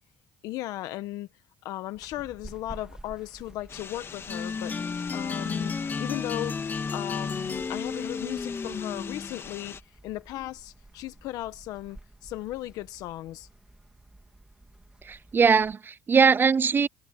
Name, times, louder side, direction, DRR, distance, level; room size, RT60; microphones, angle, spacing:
voice 1, 0.4-1.3 1.6-4.7 5.1-5.7 6.0-6.6 6.9-9.8 10.0-13.5, left 16 dB, 80° left, 1.1 m, -36 dB
sound 1, 1.9-15.7, right 2 dB, 10° right, 3.2 m, -52 dB
sound 2, 3.7-9.8, left 6 dB, 45° left, 2.7 m, -43 dB
sound 3, 4.3-9.4, left 5 dB, 30° left, 0.5 m, -32 dB
voice 2, 15.0-16.9, right 5 dB, 35° right, 0.5 m, -21 dB
supercardioid pair, 80°, 6 cm